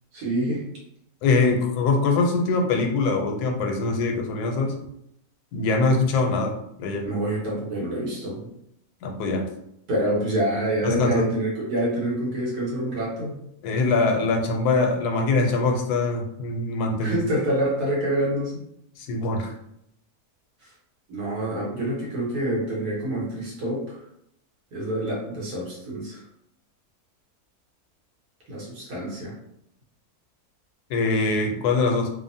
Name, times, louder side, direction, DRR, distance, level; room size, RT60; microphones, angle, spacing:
voice 1, 0.1-0.6 7.1-8.5 9.9-13.4 17.0-18.6 20.6-20.7 21.1-24.0 24.7-26.2 28.5-29.3, right 1 dB, 80° right, -5 dB, 1.6 m, -27 dB
voice 2, 1.2-4.7 5.5-7.1 9.0-9.5 10.8-11.3 13.6-17.3 19.0-19.5 30.9-32.1, left 3 dB, 80° left, 3 dB, 1.1 m, -23 dB
3.2 x 2.0 x 2.6 m, 0.76 s
omnidirectional pair, 1.6 m